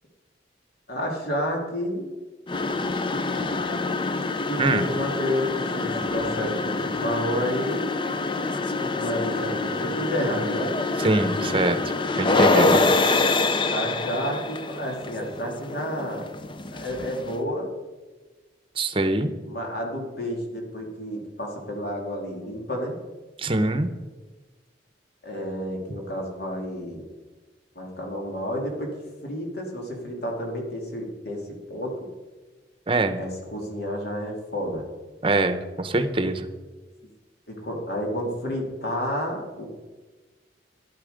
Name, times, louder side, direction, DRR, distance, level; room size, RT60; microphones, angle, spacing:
voice 1, 0.9-2.1 4.5-7.9 8.8-10.7 12.2-13.0 13.7-16.3 16.7-17.7 19.5-23.0 25.2-27.0 27.7-28.9 29.2-31.9 33.2-34.8 37.5-39.7, equal, 60° left, 0 dB, 2.8 m, -30 dB
sound 1, 2.5-17.4, left 3 dB, 25° left, 0.5 m, -26 dB
voice 2, 11.0-12.8 18.8-19.3 23.4-23.9 32.9-33.2 35.2-36.5, right 2 dB, 30° right, 9 dB, 0.8 m, -24 dB
12.0 x 11.5 x 5.2 m, 1.3 s
head